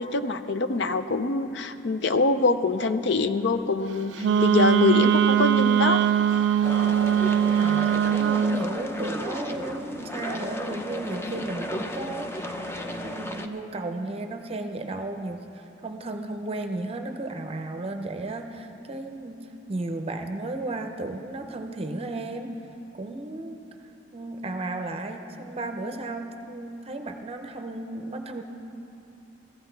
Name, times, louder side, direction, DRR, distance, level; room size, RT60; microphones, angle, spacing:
voice 1, 0.0-6.0, left 3 dB, 70° left, 10 dB, 0.6 m, -24 dB
Wind instrument woodwind instrument, 4.2-8.6, right 8 dB, 75° right, 0.3 m, -21 dB
sound 1, 6.6-13.5, left 1 dB, 15° left, 0.6 m, -34 dB
voice 2, 7.4-19.4 19.7-22.6 23.0-23.6 24.1-28.4, right 2 dB, 35° right, 6 dB, 0.6 m, -34 dB
15.0 x 14.5 x 4.5 m, 2.9 s
head